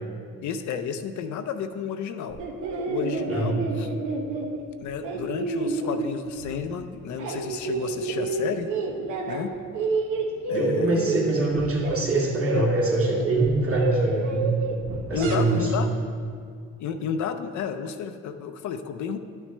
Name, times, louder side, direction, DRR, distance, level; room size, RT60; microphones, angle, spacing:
voice 1, 0.4-2.4 2.8-3.9 4.8-8.7 9.3-9.6 10.5-11.1 12.5-12.7 15.1-15.9 16.8-19.2, left 7 dB, 70° left, 8 dB, 0.6 m, -31 dB
sound 1, 2.3-6.7 7.0-9.5 9.7-15.7, right 3 dB, 90° right, 1.0 m, -29 dB
voice 2, 3.3-3.6 10.5-14.5 15.1-15.9, right 2 dB, 45° right, -4 dB, 2.2 m, -24 dB
10.5 x 6.3 x 3.3 m, 2.2 s
cardioid pair, 90°, 30 cm